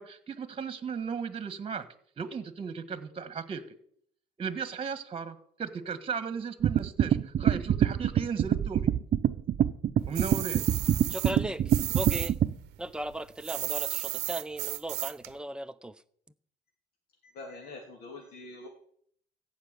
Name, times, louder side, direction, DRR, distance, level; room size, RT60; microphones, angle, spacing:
voice 1, 0.0-1.8 2.2-3.6 4.4-8.9 10.1-10.6, right 6 dB, 35° right, 1.4 m, -36 dB
sound 1, 6.6-12.5, right 10 dB, 50° right, 0.7 m, -25 dB
sound 2, 10.1-12.3 12.6-15.3, right 18 dB, 90° right, 0.7 m, -34 dB
voice 2, 11.1-11.6 11.9-12.3 12.8-15.9, right 1 dB, 5° right, 0.7 m, -37 dB
voice 3, 17.3-18.7, left 2 dB, 65° left, 2.8 m, -44 dB
14.5 x 5.8 x 9.1 m
cardioid pair, 110°, 17 cm